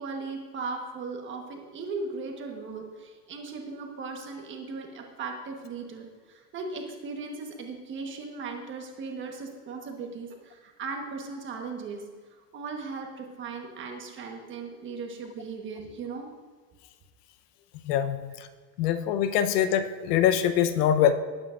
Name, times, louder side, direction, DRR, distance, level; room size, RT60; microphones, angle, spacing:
voice 1, 0.0-12.0 12.5-16.3, right 4 dB, 25° right, 2 dB, 1.4 m, -37 dB
voice 2, 17.8-18.2 18.8-21.1, left 10 dB, 80° left, 9 dB, 1.0 m, -23 dB
19.5 x 8.9 x 2.6 m, 1.5 s
supercardioid pair, 160°, 47 cm